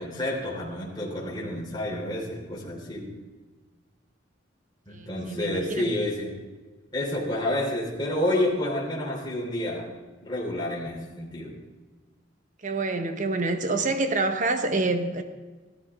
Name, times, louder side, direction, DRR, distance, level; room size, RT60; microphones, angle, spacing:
voice 1, 0.0-3.1 4.9-6.3 6.9-9.9 10.2-11.5, left 1 dB, 20° left, -6 dB, 3.2 m, -29 dB
voice 2, 4.9-5.9 12.6-15.2, right 3 dB, 40° right, 7 dB, 1.0 m, -27 dB
15.5 x 13.0 x 3.6 m, 1.3 s
head